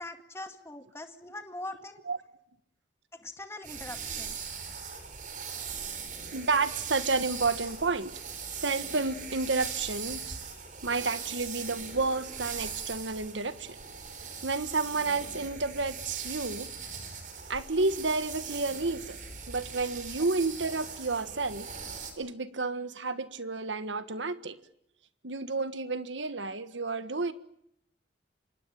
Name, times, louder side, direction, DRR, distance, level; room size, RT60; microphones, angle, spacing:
voice 1, 0.0-2.1 3.1-4.5, left 2 dB, 15° left, 7 dB, 2.0 m, -42 dB
sound 1, 3.6-22.1, right 6 dB, 45° right, 4.8 m, -40 dB
voice 2, 6.3-8.1 8.6-10.4 10.8-13.8 14.4-16.7 17.5-19.2 19.5-21.7 22.2-24.6 25.2-27.3, right 3 dB, 85° right, 12 dB, 1.5 m, -31 dB
26.0 x 24.0 x 9.1 m, 0.71 s
head